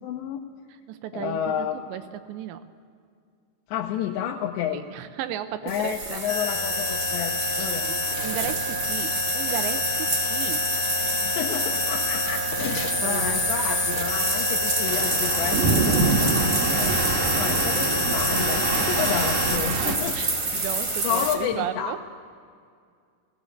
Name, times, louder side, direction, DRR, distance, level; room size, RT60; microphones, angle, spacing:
voice 1, 0.0-0.5 1.1-1.8 3.7-4.9 5.6-7.8 8.1-8.2 11.2-16.9 17.4-20.2 20.5-20.7 21.0-21.9, left 9 dB, 85° left, 0 dB, 3.0 m, -31 dB
voice 2, 0.9-2.0 2.3-2.6 4.7-6.2 7.8-10.7 13.0-13.4 20.1-20.3 20.6-22.0, right 11 dB, 85° right, 10 dB, 3.0 m, -34 dB
sound 1, 5.7-21.3, right 3 dB, 30° right, 1.9 m, -29 dB
sound 2, 6.3-19.6, left 3 dB, 55° left, 3.1 m, -28 dB
sound 3, 14.9-20.0, right 4 dB, 65° right, 2.7 m, -26 dB
18.5 x 17.0 x 8.4 m, 2.2 s
omnidirectional pair, 5.1 m